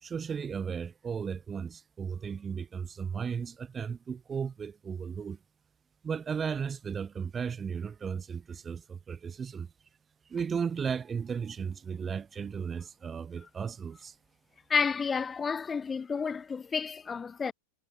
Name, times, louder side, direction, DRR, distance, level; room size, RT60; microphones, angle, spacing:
voice 1, 0.0-5.4 6.0-9.7 10.3-14.1, right 6 dB, 20° right, 1.4 m, -35 dB
voice 2, 14.7-17.5, left 5 dB, 15° left, 0.8 m, -30 dB
figure-of-eight pair, 90°, 0 cm